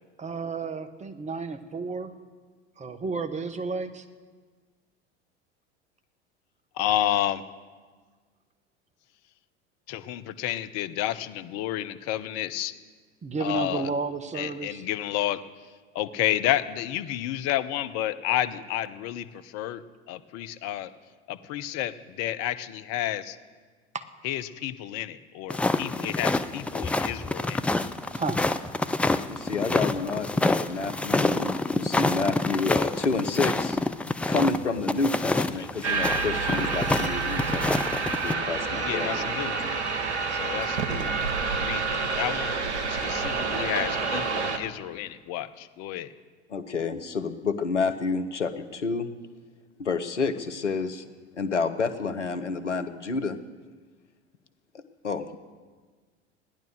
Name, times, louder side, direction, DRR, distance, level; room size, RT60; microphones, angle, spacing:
voice 1, 0.2-2.1 2.8-4.0 13.2-14.8 28.1-28.4, right 4 dB, 20° right, 9 dB, 1.1 m, -32 dB
voice 2, 6.7-7.4 9.9-12.7 13.4-13.9 14.3-15.4 15.9-19.8 20.1-20.9 21.3-23.4 24.2-27.7 35.3-35.4 36.5-36.6 38.8-39.8 40.3-41.3 41.6-42.6 42.9-46.1, left 12 dB, 45° left, 12 dB, 0.8 m, -30 dB
sound 1, 25.5-38.3, left 2 dB, 5° left, 0.4 m, -27 dB
voice 3, 29.3-33.8 34.3-38.0 38.2-39.3 46.5-49.1 49.8-51.1 51.4-53.4 54.7-55.4, left 4 dB, 85° left, 9 dB, 0.9 m, -29 dB
sound 2, 35.8-44.6, right 4 dB, 75° right, 1.4 m, -28 dB
16.0 x 10.5 x 6.4 m, 1.5 s
figure-of-eight pair, 75°, 35 cm